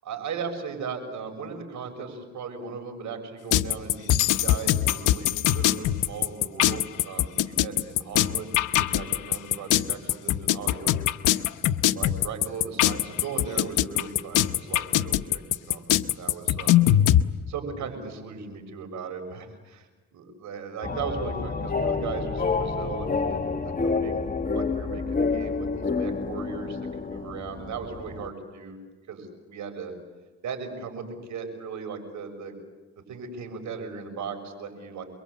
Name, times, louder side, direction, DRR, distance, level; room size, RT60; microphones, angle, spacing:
voice 1, 0.0-8.5 8.8-11.0 11.9-16.8 17.5-24.2 24.5-26.8 27.1-28.8 29.1-29.9 30.4-31.0 31.3-32.5 33.1-35.0, right 5 dB, 70° right, 5 dB, 7.0 m, -37 dB
sound 1, 3.5-17.2, left 13 dB, 85° left, 0.9 m, -22 dB
sound 2, 20.8-28.3, left 4 dB, 30° left, 1.6 m, -29 dB
28.5 x 23.0 x 8.4 m, 1.2 s
cardioid pair, 90°, 30 cm